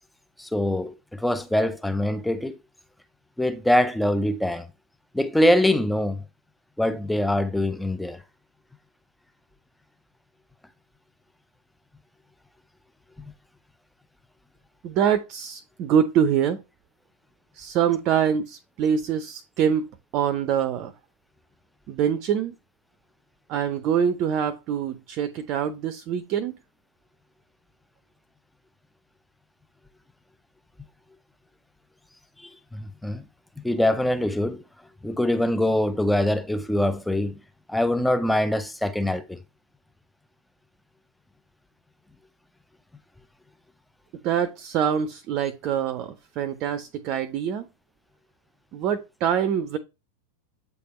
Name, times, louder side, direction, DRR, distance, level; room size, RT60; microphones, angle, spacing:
voice 1, 0.4-2.6 3.4-4.7 5.1-6.2 6.8-8.2 13.2-13.3 32.4-33.2 33.6-34.6 35.0-37.4 37.7-39.4, left 1 dB, 5° left, 0.6 m, -24 dB
voice 2, 14.8-16.6 17.5-19.9 20.1-20.9 21.9-22.5 23.5-26.5 44.2-47.7 48.7-49.8, right 8 dB, 40° right, 0.6 m, -25 dB
8.3 x 3.4 x 4.3 m
figure-of-eight pair, 90°, 0 cm